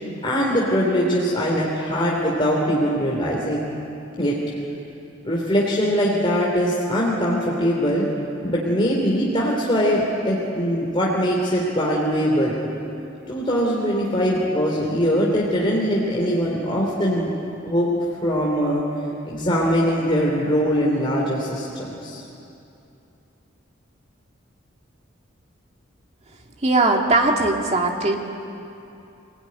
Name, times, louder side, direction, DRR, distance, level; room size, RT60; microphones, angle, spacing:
voice 1, 0.2-3.6 4.2-4.4 5.2-8.1 8.4-12.6 13.3-17.3 17.6-17.9 18.2-18.8 19.2-22.2, equal, 25° left, -4 dB, 3.3 m, -22 dB
voice 2, 26.6-28.2, right 2 dB, 35° right, 1 dB, 2.3 m, -19 dB
25.0 x 18.5 x 9.8 m, 2.8 s
head